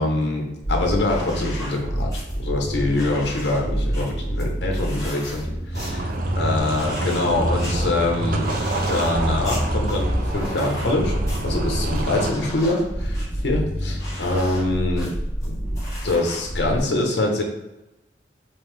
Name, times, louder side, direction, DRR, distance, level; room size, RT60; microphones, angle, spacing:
voice 1, 0.0-2.1 2.4-8.5 8.9-11.1 11.4-15.1 16.0-17.4, left 2 dB, 75° left, 1 dB, 0.8 m, -24 dB
sound 1, 0.6-16.8, equal, 20° left, 1.2 m, -28 dB
sound 2, 5.7-12.3, right 1 dB, 50° right, 0.5 m, -28 dB
3.7 x 2.7 x 3.2 m, 0.97 s
head